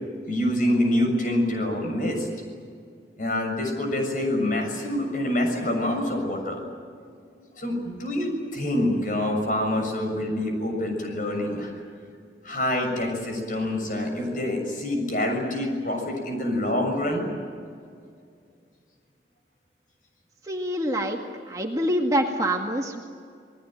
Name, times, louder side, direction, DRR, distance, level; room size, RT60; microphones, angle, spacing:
voice 1, 0.3-2.3 3.2-6.6 7.3-11.7 12.4-17.3, left 1 dB, 50° left, 3 dB, 6.8 m, -26 dB
voice 2, 20.4-21.2 21.5-23.0, equal, 20° right, 1 dB, 2.0 m, -25 dB
28.5 x 20.0 x 9.1 m, 2.2 s
head